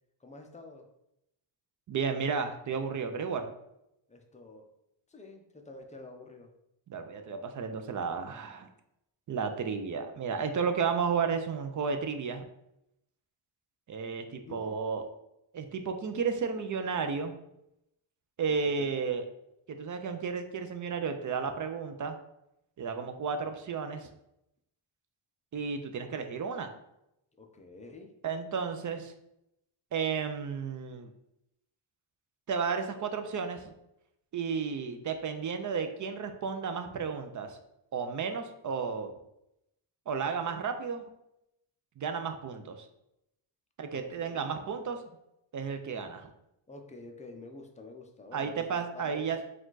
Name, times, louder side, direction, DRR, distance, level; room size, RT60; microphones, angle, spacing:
voice 1, 0.2-0.9 4.1-4.7 5.1-6.5 14.4-14.7 18.6-19.0 27.4-28.1 43.9-44.5 46.7-49.4, left 3 dB, 15° left, 3 dB, 0.4 m, -49 dB
voice 2, 1.9-3.5 6.9-8.7 9.3-12.4 13.9-15.0 15.5-17.3 18.4-19.2 19.7-22.2 22.8-24.1 25.5-26.7 28.2-29.1 29.9-31.1 32.5-33.6 34.3-37.6 37.9-39.1 40.1-41.0 42.0-42.9 43.8-45.0 45.5-46.3 48.3-49.4, right 5 dB, 40° right, 6 dB, 0.5 m, -33 dB
4.8 x 2.4 x 3.8 m, 0.83 s
cardioid pair, 125°, 49 cm